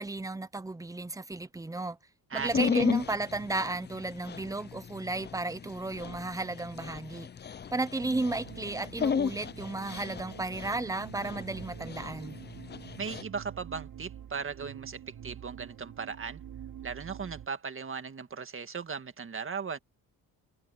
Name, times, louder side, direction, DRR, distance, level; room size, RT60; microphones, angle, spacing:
voice 1, 0.0-2.0 2.3-7.3 7.7-12.4, right 2 dB, 10° right, 0.8 m, -34 dB
voice 2, 2.3-2.8 13.0-16.4 16.8-19.8, right 5 dB, 35° right, 1.8 m, -37 dB
Dog, 2.4-13.2, left 7 dB, 30° left, 0.6 m, -35 dB
sound 1, 8.0-17.5, right 10 dB, 65° right, 3.7 m, -46 dB
cardioid pair, 110°, 38 cm